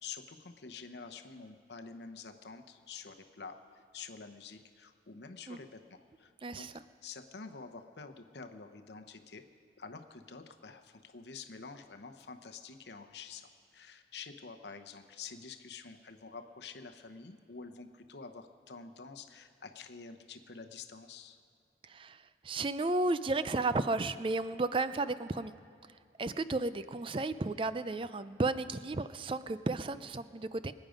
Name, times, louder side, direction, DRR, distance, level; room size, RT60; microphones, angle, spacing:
voice 1, 0.0-6.7 7.0-9.4 9.8-21.4, left 5 dB, 70° left, 7 dB, 0.8 m, -48 dB
voice 2, 6.4-6.7 21.8-25.5 26.2-30.7, right 3 dB, 30° right, 13 dB, 0.4 m, -33 dB
24.5 x 9.2 x 5.1 m, 2.4 s
head